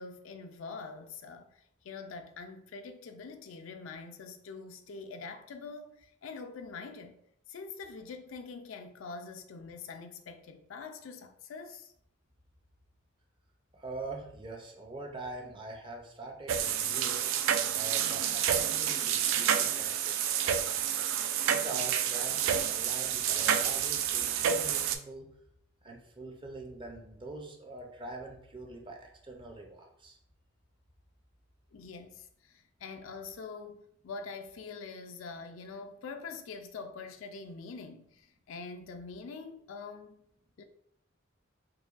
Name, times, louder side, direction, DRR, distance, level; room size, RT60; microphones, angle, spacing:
voice 1, 0.0-1.5 1.8-7.2 7.5-11.9 31.7-40.2 40.6-40.7, left 4 dB, 75° left, 0.4 m, -44 dB
voice 2, 13.7-17.2 17.7-20.2 20.4-21.0 21.5-25.3 25.8-30.2, right 2 dB, 25° right, 0.6 m, -44 dB
sound 1, 16.5-25.0, right 9 dB, 70° right, 0.3 m, -29 dB
4.7 x 2.2 x 2.5 m
head